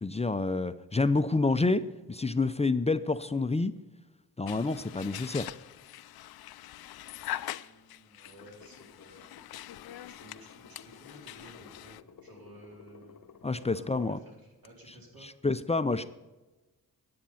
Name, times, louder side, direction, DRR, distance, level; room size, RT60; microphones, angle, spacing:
voice 1, 0.0-3.7 4.4-5.5 13.4-14.2 15.4-16.0, left 3 dB, 15° left, 11 dB, 0.5 m, -28 dB
sound 1, 4.5-12.0, left 13 dB, 75° left, 0.5 m, -43 dB
voice 2, 6.9-9.2 10.1-13.2 13.7-15.3, right 1 dB, 65° right, -2 dB, 4.0 m, -54 dB
sound 2, 8.2-14.2 14.6-14.7, left 5 dB, 55° left, 0.9 m, -55 dB
10.5 x 8.7 x 5.6 m, 1.2 s
cardioid pair, 60°, 38 cm